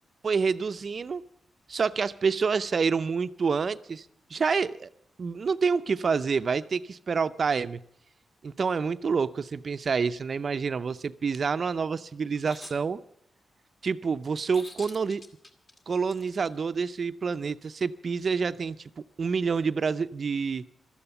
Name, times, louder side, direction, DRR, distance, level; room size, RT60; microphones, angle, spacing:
voice 1, 0.2-1.2 1.7-4.9 5.2-7.8 8.4-13.0 13.8-15.2 15.9-18.8 19.2-20.6, right 5 dB, 50° right, 13 dB, 0.6 m, -28 dB
sound 1, 12.3-12.8 14.5-16.5, left 2 dB, 35° left, 2.1 m, -46 dB
16.0 x 13.0 x 6.9 m, 0.70 s
cardioid pair, 95°, 0 cm